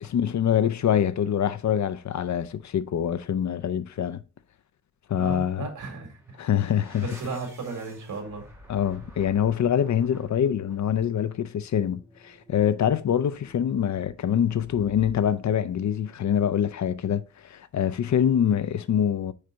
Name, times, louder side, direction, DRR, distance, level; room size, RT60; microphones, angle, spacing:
voice 1, 0.0-4.2 5.1-5.7 6.4-7.1 8.7-19.3, left 9 dB, 70° left, 0.5 m, -25 dB
voice 2, 5.2-6.2 7.0-8.5, right 4 dB, 90° right, 2.4 m, -35 dB
sound 1, 6.0-16.7, equal, 10° right, 2.1 m, -51 dB
6.6 x 4.5 x 3.8 m
wide cardioid pair, 130°, 30 cm